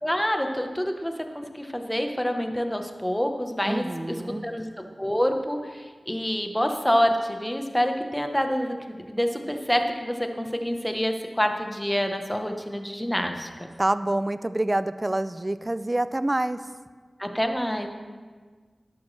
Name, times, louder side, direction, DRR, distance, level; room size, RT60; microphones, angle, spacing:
voice 1, 0.0-4.2 4.4-4.7 5.0-13.7 17.2-17.9, equal, 10° left, 5 dB, 1.0 m, -27 dB
voice 2, 3.6-4.5 13.8-16.6, right 1 dB, 25° right, 14 dB, 0.4 m, -26 dB
12.5 x 11.5 x 3.3 m, 1.5 s
wide cardioid pair, 75°, 0 cm